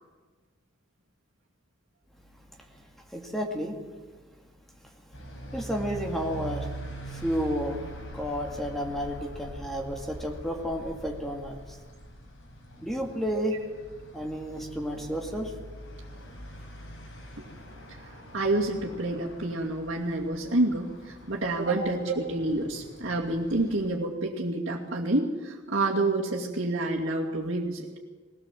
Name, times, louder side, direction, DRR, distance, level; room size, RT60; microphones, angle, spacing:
voice 1, 3.1-3.8 5.5-6.7 7.1-11.6 12.8-13.6 14.1-15.5, equal, ahead, 1 dB, 2.2 m, -31 dB
sound 1, 5.1-23.9, right 1 dB, 75° left, 5.1 m, -43 dB
voice 2, 18.3-27.9, right 2 dB, 65° right, -7 dB, 2.6 m, -28 dB
20.5 x 17.5 x 7.6 m, 1.4 s
head